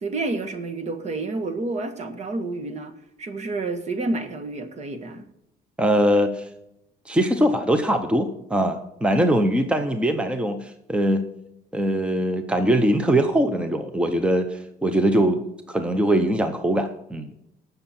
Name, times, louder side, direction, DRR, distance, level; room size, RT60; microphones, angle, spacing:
voice 1, 0.0-2.9 3.2-5.3, right 3 dB, 40° right, 8 dB, 1.6 m, -29 dB
voice 2, 5.8-6.5 7.1-11.2 11.7-15.4 15.7-17.3, right 1 dB, 5° right, 8 dB, 0.8 m, -22 dB
18.0 x 6.7 x 4.4 m, 0.83 s
cardioid pair, 110°, 17 cm